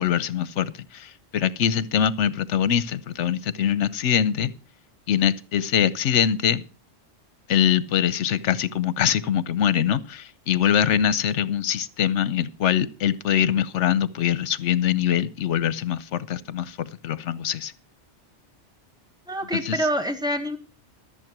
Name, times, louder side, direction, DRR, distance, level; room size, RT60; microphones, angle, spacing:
voice 1, 0.0-4.5 5.1-6.6 7.5-17.7 19.6-19.8, left 9 dB, 80° left, 1.1 m, -23 dB
voice 2, 19.3-20.6, equal, 5° right, 1.5 m, -26 dB
13.5 x 7.2 x 6.0 m
omnidirectional pair, 1.2 m